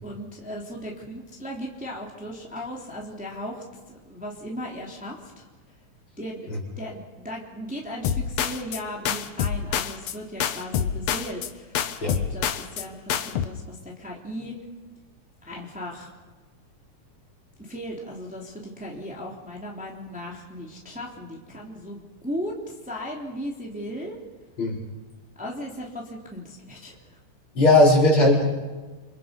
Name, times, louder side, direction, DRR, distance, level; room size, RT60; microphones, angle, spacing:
voice 1, 0.0-5.5 6.2-14.6 15.4-16.1 17.6-24.2 25.4-27.0, equal, 5° right, -2 dB, 3.3 m, -37 dB
sound 1, 8.0-8.8 9.1-10.2 10.4-11.5 11.7-12.8 13.1-13.5, left 9 dB, 65° left, 2.1 m, -26 dB
voice 2, 27.6-28.4, left 2 dB, 40° left, -2 dB, 5.7 m, -17 dB
29.5 x 27.0 x 5.4 m, 1.3 s
omnidirectional pair, 3.5 m